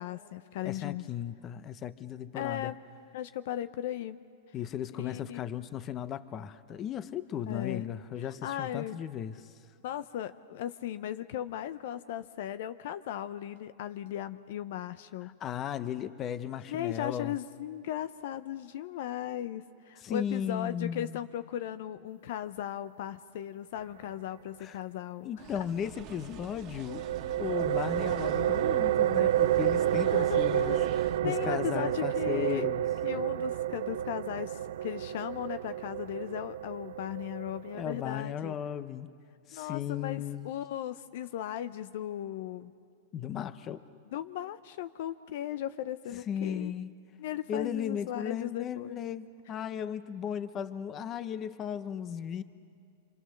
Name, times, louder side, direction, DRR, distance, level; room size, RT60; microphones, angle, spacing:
voice 1, 0.0-1.1 2.3-2.8 3.1-4.2 5.0-5.4 7.5-7.8 8.2-9.0 9.8-15.3 16.7-25.3 30.0-32.7 33.0-38.5 39.5-42.7 44.1-46.7 47.2-49.0, left 11 dB, 65° left, 12 dB, 0.6 m, -37 dB
voice 2, 0.6-2.7 4.5-9.5 15.4-17.4 20.0-21.2 24.6-24.8 25.2-27.0 27.4-32.8 37.8-39.1 39.5-40.5 43.1-43.8 46.1-47.0 47.5-52.4, left 9 dB, 30° left, 13 dB, 0.8 m, -36 dB
sound 1, 25.4-31.2, right 7 dB, 40° right, 1.6 m, -46 dB
sound 2, 26.9-38.3, right 12 dB, 75° right, 0.5 m, -30 dB
26.5 x 25.5 x 6.5 m, 2.3 s
hypercardioid pair, 135°, 0 cm